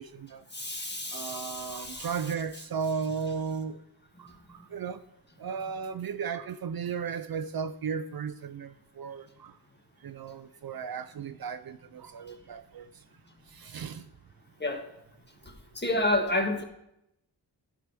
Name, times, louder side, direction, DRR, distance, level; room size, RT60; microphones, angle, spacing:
voice 1, 0.0-0.4 1.1-3.8 4.2-5.0 5.4-9.6 10.0-13.0 13.5-14.1, right 6 dB, 55° right, 0.5 m, -35 dB
voice 2, 0.5-2.2 4.1-4.7 14.6-14.8 15.4-16.6, left 1 dB, 25° left, 1.4 m, -31 dB
11.5 x 4.8 x 6.0 m
wide cardioid pair, 80°, 43 cm